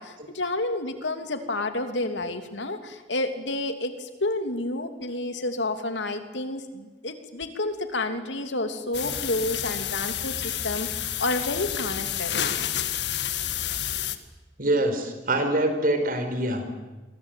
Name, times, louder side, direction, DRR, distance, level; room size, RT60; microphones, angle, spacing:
voice 1, 0.0-12.3, left 2 dB, 90° left, 7 dB, 2.9 m, -30 dB
sound 1, 8.9-14.2, left 10 dB, 70° left, 1.8 m, -29 dB
voice 2, 14.6-16.7, right 1 dB, 50° right, 7 dB, 4.7 m, -24 dB
28.0 x 23.0 x 9.3 m, 1.2 s
head